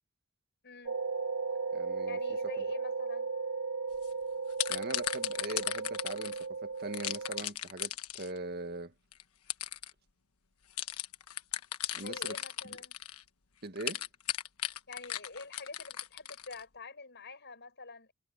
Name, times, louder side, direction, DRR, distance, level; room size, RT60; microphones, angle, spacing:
voice 1, 0.6-1.0 2.1-3.3 12.0-13.0 14.9-18.1, left 3 dB, 50° left, 6.9 m, -46 dB
sound 1, 0.9-7.4, right 4 dB, 90° right, 2.2 m, -36 dB
voice 2, 1.7-2.2 4.7-8.9 11.9-12.4 12.6-12.8 13.6-14.0, right 2 dB, 45° right, 1.9 m, -41 dB
sound 2, 3.9-4.1 4.5-6.4 6.9-8.4 9.1-9.2 9.5-9.9 10.8-13.2 13.8-16.6, left 12 dB, 80° left, 1.3 m, -36 dB
head